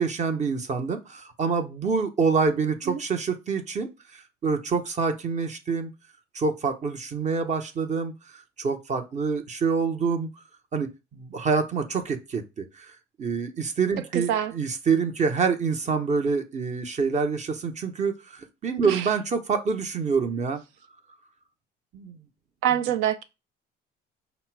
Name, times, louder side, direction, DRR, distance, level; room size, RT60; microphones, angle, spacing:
voice 1, 0.0-5.9 6.3-8.1 8.6-10.3 10.7-12.9 13.2-20.6 21.9-22.2, right 5 dB, 35° right, 0.8 m, -26 dB
voice 2, 14.1-14.5 18.8-19.1 22.6-23.2, right 10 dB, 80° right, 0.6 m, -25 dB
5.2 x 2.0 x 4.5 m
cardioid pair, 100°, 20 cm